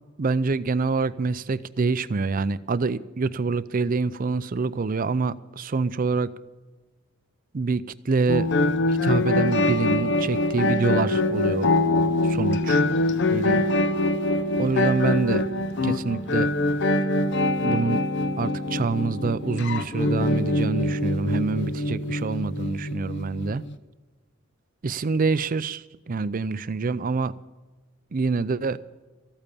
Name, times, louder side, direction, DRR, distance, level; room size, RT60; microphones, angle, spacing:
voice 1, 0.2-6.3 7.5-8.5 8.9-11.7 12.2-12.8 13.3-13.7 14.6-15.4 15.8-16.5 17.6-18.0 18.4-23.6 24.8-27.3 28.1-28.8, right 4 dB, 40° right, 0.5 m, -26 dB
sound 1, 8.3-23.8, left 2 dB, 55° left, 0.7 m, -24 dB
14.5 x 8.8 x 8.4 m
head